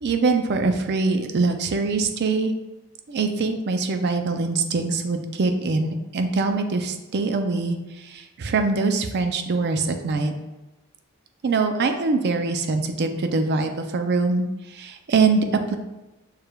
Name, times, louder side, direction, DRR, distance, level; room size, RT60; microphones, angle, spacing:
voice 1, 0.0-2.5 3.1-10.3 11.4-15.7, right 3 dB, 50° right, 6 dB, 0.4 m, -23 dB
6.7 x 3.2 x 2.3 m, 1.0 s
head